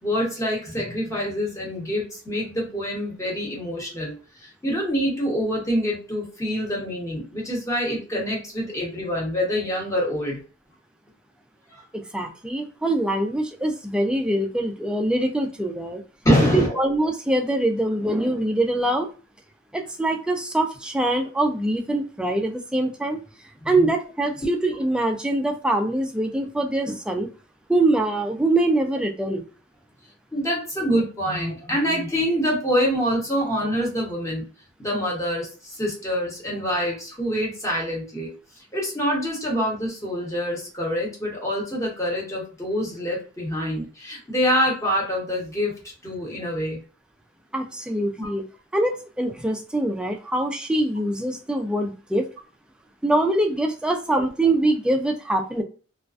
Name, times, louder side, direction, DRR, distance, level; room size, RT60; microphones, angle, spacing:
voice 1, 0.0-10.4 11.7-11.8 16.2-16.8 23.8-23.9 30.3-34.4 34.8-38.3 38.7-45.7 46.0-46.8 48.2-48.3, equal, 15° left, -3 dB, 0.9 m, -25 dB
voice 2, 11.9-16.0 16.5-19.1 19.7-23.2 23.7-27.3 27.7-29.4 47.5-48.5 48.7-52.3 53.0-55.6, right 1 dB, 5° right, 2 dB, 0.3 m, -23 dB
2.4 x 2.2 x 2.4 m, 0.36 s
head